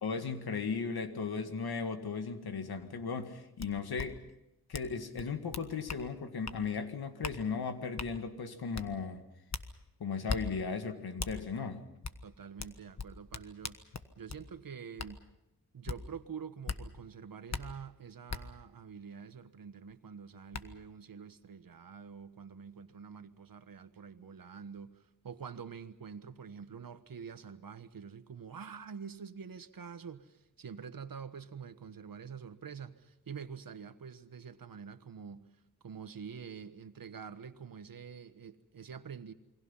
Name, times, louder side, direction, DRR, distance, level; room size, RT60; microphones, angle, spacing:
voice 1, 0.0-4.2 4.7-9.2 10.0-11.8, left 5 dB, 80° left, 2.0 m, -36 dB
sound 1, 3.6-3.7 4.0-4.1 4.7-4.9 5.2-6.0 6.4-6.6 7.2-7.4 8.0-8.1 8.7-8.9 9.5-9.7 10.3-10.4 11.2-11.3 12.0-12.2 12.6-14.4 15.0-15.1 15.9-16.0 16.7-16.8 17.5-17.6 18.3-18.4 19.9-20.0 20.5-20.6, left 5 dB, 45° left, 1.4 m, -38 dB
voice 2, 12.2-13.8 14.2-15.2 15.7-35.4 35.8-39.3, right 6 dB, 65° right, 1.4 m, -46 dB
28.5 x 22.5 x 5.7 m
cardioid pair, 70°, 37 cm